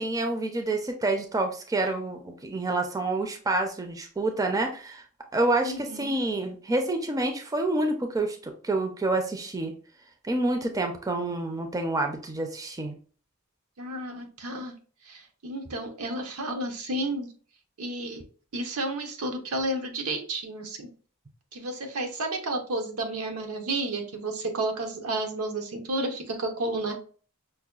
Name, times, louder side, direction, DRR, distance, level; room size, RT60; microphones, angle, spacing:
voice 1, 0.0-5.0 5.3-9.7 10.2-13.0, right 2 dB, 15° right, 5 dB, 0.4 m, -28 dB
voice 2, 5.6-6.1 13.8-14.7 15.0-17.3 17.8-18.2 18.5-20.9 21.5-26.9, right 2 dB, 85° right, 5 dB, 0.7 m, -31 dB
5.4 x 2.2 x 2.3 m, 0.40 s
head